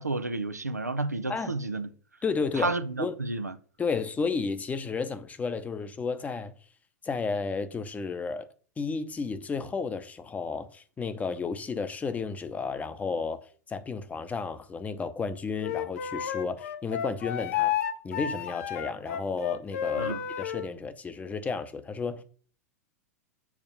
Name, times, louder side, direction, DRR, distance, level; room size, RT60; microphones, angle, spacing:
voice 1, 0.0-1.9 2.6-3.6 20.0-20.2, right 2 dB, 90° right, 0.7 m, -31 dB
voice 2, 2.2-2.7 3.0-3.1 3.8-6.5 7.0-8.5 8.8-17.7 18.0-22.2, left 4 dB, 15° left, 0.8 m, -32 dB
Wind instrument woodwind instrument, 15.6-20.7, left 9 dB, 55° left, 0.8 m, -31 dB
7.3 x 4.7 x 5.5 m
figure-of-eight pair, 90°, 9 cm